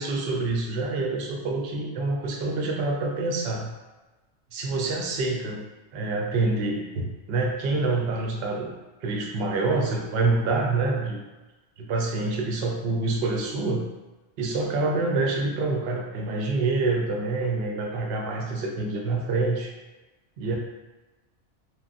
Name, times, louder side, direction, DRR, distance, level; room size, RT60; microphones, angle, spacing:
voice 1, 0.0-3.7 4.5-5.6 5.9-8.7 9.0-11.2 11.8-13.8 14.4-19.7 20.4-20.6, right 3 dB, 65° right, 0 dB, 0.7 m, -26 dB
2.9 x 2.1 x 2.5 m, 1.1 s
omnidirectional pair, 1.3 m